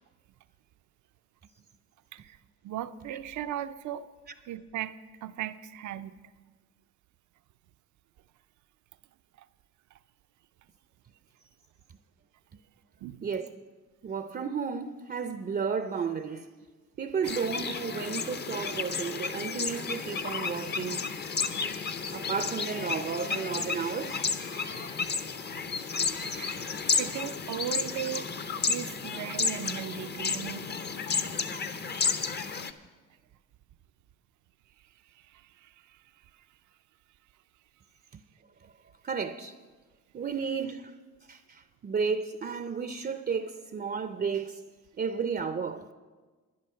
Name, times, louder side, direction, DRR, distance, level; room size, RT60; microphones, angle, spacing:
voice 1, 2.6-4.1 4.5-5.0 5.2-6.1 13.0-13.3 17.2-17.4 26.3-28.3 28.7-30.7 35.1-36.0, right 11 dB, 75° right, 0.6 m, -37 dB
voice 2, 14.0-16.5 17.0-21.1 22.1-24.3 28.1-28.2 38.1-38.2 38.6-38.7 39.0-39.5 40.1-40.9 41.3-44.6 45.0-45.9, right 6 dB, 35° right, 0.5 m, -33 dB
sound 1, 17.2-32.7, left 5 dB, 35° left, 0.7 m, -32 dB
sound 2, 19.9-26.3, left 6 dB, 85° left, 1.3 m, -50 dB
11.5 x 10.0 x 5.7 m
cardioid pair, 90°, 30 cm